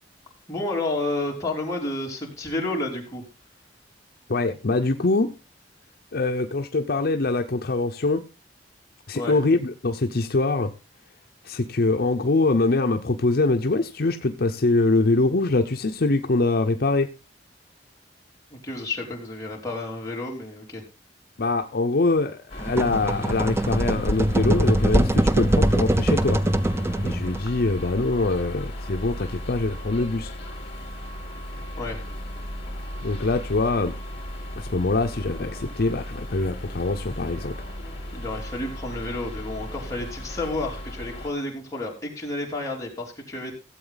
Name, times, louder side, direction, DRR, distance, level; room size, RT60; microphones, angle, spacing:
voice 1, 0.5-3.2 9.1-9.4 18.5-20.8 31.8-32.0 38.1-43.5, left 2 dB, 20° left, 3.8 m, -30 dB
voice 2, 4.3-5.3 6.1-8.3 9.1-10.7 11.4-17.1 21.4-26.4 27.0-30.3 33.0-33.9 34.5-37.6, left 2 dB, 60° left, 0.7 m, -23 dB
sound 1, 22.5-41.3, equal, 35° left, 3.4 m, -36 dB
sound 2, 22.6-27.5, right 1 dB, 15° right, 0.5 m, -22 dB
16.0 x 8.0 x 3.9 m
head